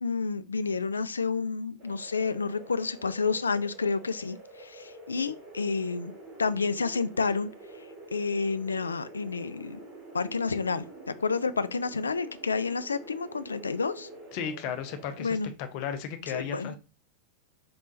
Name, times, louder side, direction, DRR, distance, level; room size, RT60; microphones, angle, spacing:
voice 1, 0.0-6.1 6.4-7.5 8.1-9.8 10.1-10.8 11.2-14.1 15.2-15.5 16.3-16.8, left 4 dB, 75° left, 0.3 m, -30 dB
sound 1, 1.8-15.3, right 2 dB, 35° right, 2.5 m, -47 dB
voice 2, 14.3-16.8, left 8 dB, 45° left, 0.7 m, -35 dB
3.8 x 3.6 x 3.9 m
figure-of-eight pair, 90°, 0 cm